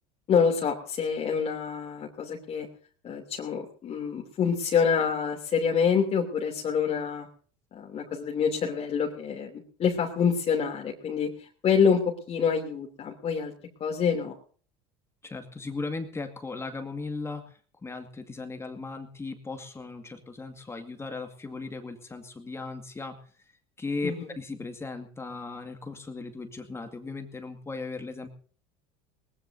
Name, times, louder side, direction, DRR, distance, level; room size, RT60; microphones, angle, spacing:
voice 1, 0.3-2.7 3.0-7.3 7.7-9.5 9.8-11.3 11.6-13.5 13.8-14.3 24.0-24.3, left 6 dB, 40° left, 0 dB, 3.0 m, -26 dB
voice 2, 15.2-17.4 17.8-23.2 23.8-28.3, left 3 dB, 15° left, 6 dB, 2.1 m, -37 dB
21.0 x 19.5 x 2.7 m, 0.43 s
supercardioid pair, 115°, 16 cm